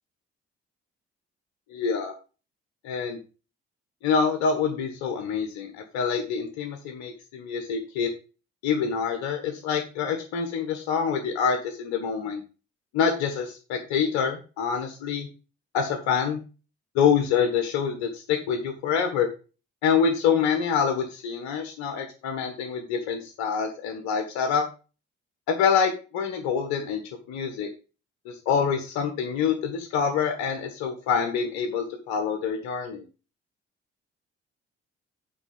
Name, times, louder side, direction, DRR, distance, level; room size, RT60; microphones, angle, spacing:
voice 1, 1.7-2.1 2.8-3.2 4.0-8.1 8.6-12.4 12.9-15.3 15.7-16.4 16.9-19.3 19.8-24.6 25.5-27.0 27.3-27.7 28.2-33.0, left 6 dB, 70° left, 5 dB, 1.5 m, -26 dB
8.9 x 4.5 x 7.1 m, 0.33 s
figure-of-eight pair, 40°, 31 cm